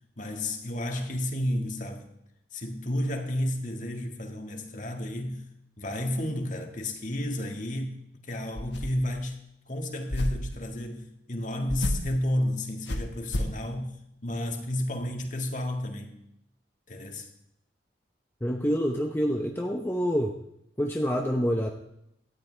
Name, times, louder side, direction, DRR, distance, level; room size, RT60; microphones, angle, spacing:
voice 1, 0.2-2.1 2.5-5.4 5.8-8.0 8.2-9.4 9.7-13.9 14.2-16.1 16.9-17.3, left 1 dB, 40° left, 1.8 m, -31 dB
sound 1, 8.6-9.2 10.1-10.6 11.7-12.1 12.9-13.6, left 1 dB, 70° left, 1.5 m, -31 dB
voice 2, 18.4-20.4 20.8-21.7, equal, 10° left, 0.8 m, -27 dB
17.5 x 13.5 x 3.4 m
head